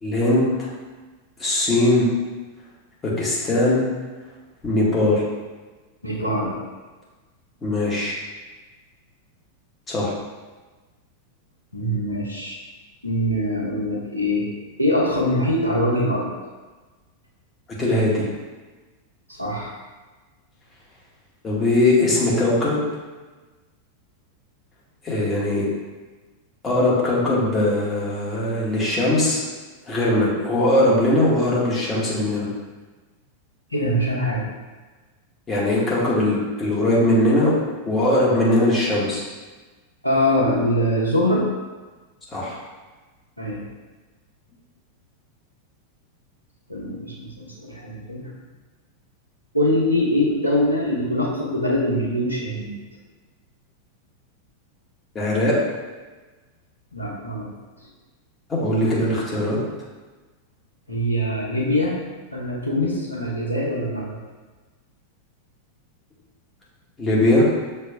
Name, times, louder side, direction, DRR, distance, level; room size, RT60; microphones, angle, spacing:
voice 1, 0.0-0.7 1.4-2.2 3.0-3.9 4.6-5.2 7.6-8.2 9.9-10.2 17.8-18.2 21.4-22.8 25.0-25.6 26.6-29.4 29.9-32.5 35.5-37.6 37.8-39.2 42.3-42.6 55.1-55.6 58.5-59.6 67.0-67.5, left 1 dB, 20° left, -5 dB, 1.3 m, -20 dB
voice 2, 6.0-6.6 11.7-12.6 13.0-14.5 14.8-16.3 19.3-19.8 33.7-34.5 40.0-41.5 43.4-43.7 46.7-48.3 49.5-52.7 56.9-57.5 60.9-62.0 62.3-64.2, left 1 dB, 85° left, -5 dB, 1.0 m, -23 dB
6.3 x 3.2 x 2.4 m, 1.3 s
figure-of-eight pair, 90°, 0 cm